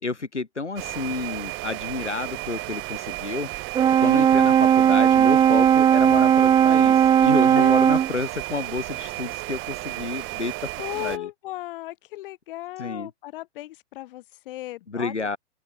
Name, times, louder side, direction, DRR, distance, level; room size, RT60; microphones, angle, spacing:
voice 1, 0.0-3.5 4.0-10.5 10.9-11.3 12.8-13.1 14.9-15.4, left 3 dB, 85° left, 6.6 m, -30 dB
sound 1, 0.8-11.2, right 25 dB, 35° right, 5.8 m, -34 dB
Brass instrument, 3.8-8.2, right 9 dB, 15° right, 0.7 m, -17 dB
voice 2, 10.8-15.4, left 16 dB, 50° left, 6.3 m, -36 dB
open air
figure-of-eight pair, 110°, 34 cm